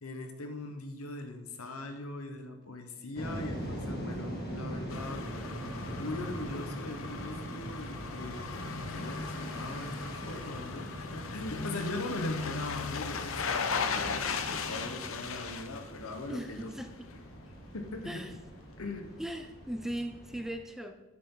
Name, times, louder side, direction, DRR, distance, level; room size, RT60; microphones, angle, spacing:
voice 1, 0.0-5.5 5.9-16.7 17.7-18.2 18.8-19.1, left 2 dB, 85° left, 6 dB, 1.1 m, -40 dB
sound 1, 3.1-20.5, right 1 dB, 50° left, 2.0 m, -42 dB
sound 2, 4.9-16.8 17.1-17.2, left 5 dB, 70° left, 0.7 m, -37 dB
voice 2, 16.3-16.9 18.0-18.3 19.2-21.0, right 1 dB, ahead, 7 dB, 0.4 m, -38 dB
9.4 x 7.0 x 3.8 m, 1.1 s
head